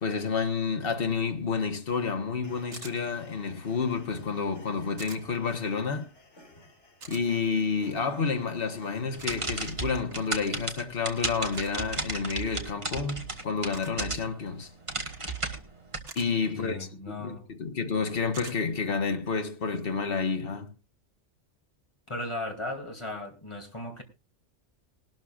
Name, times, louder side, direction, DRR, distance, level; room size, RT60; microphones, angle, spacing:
voice 1, 0.0-6.1 7.1-14.7 16.1-20.7, left 5 dB, 55° left, 1.5 m, -30 dB
sound 1, 2.4-10.0, left 1 dB, 90° left, 3.5 m, -52 dB
sound 2, 2.7-3.0 5.0-5.2 7.0-7.2 9.2-9.4 11.5-11.8 13.7-14.0 16.1-16.3 18.3-18.6, right 4 dB, 80° right, 1.8 m, -44 dB
sound 3, 9.1-14.4 14.8-16.0, right 2 dB, 30° right, 1.5 m, -33 dB
voice 2, 16.6-17.4 22.1-24.0, left 2 dB, 25° left, 2.6 m, -36 dB
19.5 x 12.5 x 2.4 m
omnidirectional pair, 1.2 m